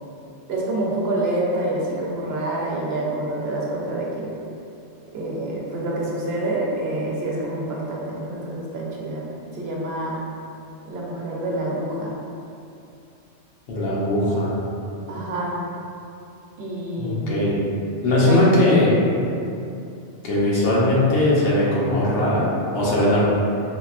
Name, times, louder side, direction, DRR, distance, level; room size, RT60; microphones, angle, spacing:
voice 1, 0.5-4.3 5.1-9.2 9.5-10.2 10.8-12.2 15.1-15.6 16.6-17.4 18.1-18.4, right 1 dB, 65° right, -3 dB, 0.8 m, -27 dB
voice 2, 13.7-14.5 17.0-17.6 18.0-19.0 20.2-22.5 22.7-23.2, left 1 dB, 85° left, -6 dB, 1.0 m, -19 dB
3.8 x 2.2 x 2.4 m, 2.7 s
omnidirectional pair, 1.2 m